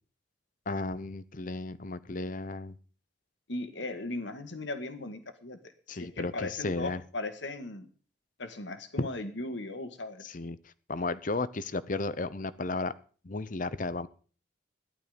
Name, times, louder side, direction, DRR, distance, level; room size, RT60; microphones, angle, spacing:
voice 1, 0.7-2.7 5.9-7.0 9.0-9.1 10.2-10.6 10.9-12.9 13.2-14.1, left 3 dB, 45° left, 16 dB, 0.8 m, -34 dB
voice 2, 3.5-5.6 5.9-7.9 8.4-10.4, left 2 dB, 70° left, 8 dB, 1.8 m, -38 dB
14.5 x 11.5 x 5.2 m, 0.40 s
head